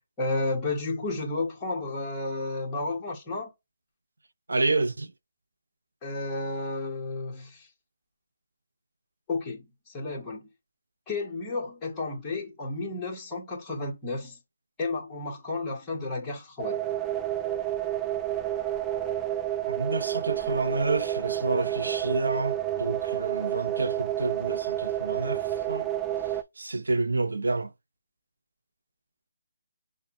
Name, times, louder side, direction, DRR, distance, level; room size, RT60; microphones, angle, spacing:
voice 1, 0.2-3.5 6.0-7.7 9.3-9.6 9.9-10.5 11.1-14.4 14.8-16.8, left 3 dB, 10° left, 1.4 m, -32 dB
voice 2, 4.5-5.1 19.6-25.4 25.7-25.9 26.6-27.7, right 3 dB, 90° right, 0.9 m, -29 dB
sound 1, 16.6-26.4, right 12 dB, 10° right, 0.4 m, -30 dB
6.5 x 2.4 x 3.2 m
hypercardioid pair, 165°, 0 cm